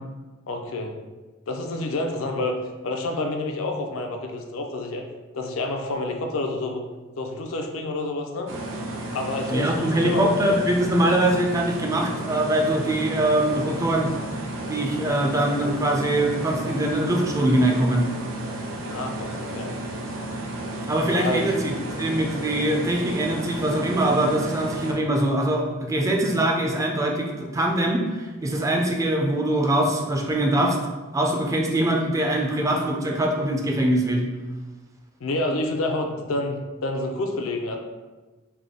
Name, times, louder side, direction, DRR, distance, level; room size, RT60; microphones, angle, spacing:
voice 1, 0.5-1.0 1.5-2.6 2.8-5.0 5.3-6.8 7.2-8.5 9.1-10.3 18.9-19.7 21.1-21.4 35.2-37.8, left 2 dB, 75° left, 3 dB, 0.4 m, -28 dB
sound 1, 8.5-24.9, right 1 dB, 70° right, 0.6 m, -33 dB
voice 2, 9.5-14.1 14.7-18.1 20.9-21.7 22.0-30.8 31.1-34.3, right 1 dB, 15° right, 1 dB, 0.3 m, -23 dB
3.4 x 2.2 x 3.6 m, 1.2 s
head